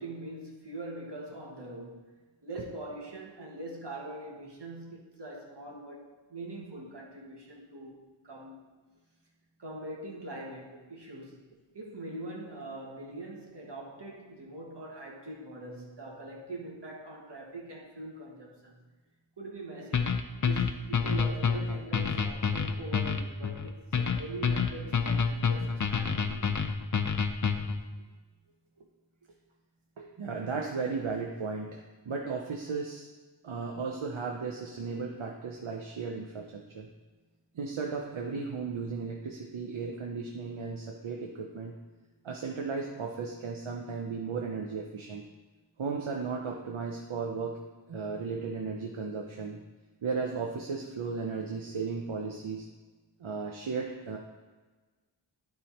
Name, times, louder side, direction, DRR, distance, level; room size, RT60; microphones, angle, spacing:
voice 1, 0.0-2.0 2.4-8.7 9.6-18.8 19.4-20.2 20.4-26.6, right 2 dB, 60° right, -2 dB, 1.7 m, -43 dB
sound 1, 19.9-27.8, left 5 dB, 40° left, 0.6 m, -28 dB
voice 2, 30.0-33.1 33.4-36.9 37.5-41.8 42.2-45.2 45.8-47.6 47.9-49.6 50.0-52.7 53.2-54.2, right 4 dB, 80° right, 0 dB, 0.8 m, -35 dB
11.0 x 3.9 x 4.3 m, 1.3 s
wide cardioid pair, 50°, 47 cm